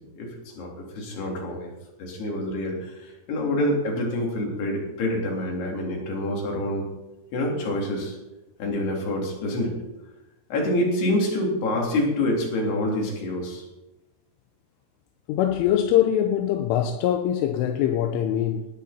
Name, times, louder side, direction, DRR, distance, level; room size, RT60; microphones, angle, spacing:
voice 1, 0.6-1.7 2.0-6.9 7.3-8.2 8.6-9.8 10.5-13.7, left 1 dB, 55° left, 5.4 m, -26 dB
voice 2, 15.3-18.7, left 10 dB, 85° left, 3.4 m, -23 dB
19.0 x 12.5 x 4.4 m
omnidirectional pair, 5.6 m